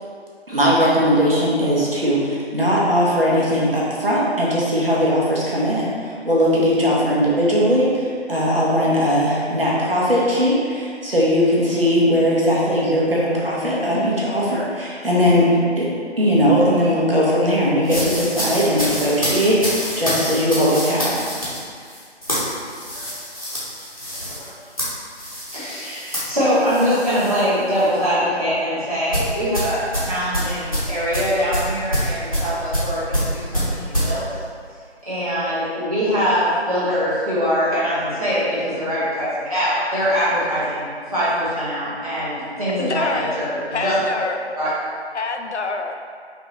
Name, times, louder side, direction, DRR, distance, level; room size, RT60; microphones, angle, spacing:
voice 1, 0.5-15.9 16.2-21.3, equal, 60° right, -6 dB, 1.1 m, -19 dB
sound 1, 17.8-27.5 27.8-28.1 29.1-34.1, equal, 30° left, 0.9 m, -26 dB
voice 2, 25.5-34.3 35.0-43.5 43.8-44.0 44.6-44.7, equal, 35° right, -12 dB, 1.4 m, -23 dB
voice 3, 42.8-43.4 43.7-44.4 45.1-45.9, left 3 dB, 85° left, 4 dB, 0.5 m, -26 dB
5.2 x 2.6 x 3.0 m, 2.1 s
figure-of-eight pair, 170°, 33 cm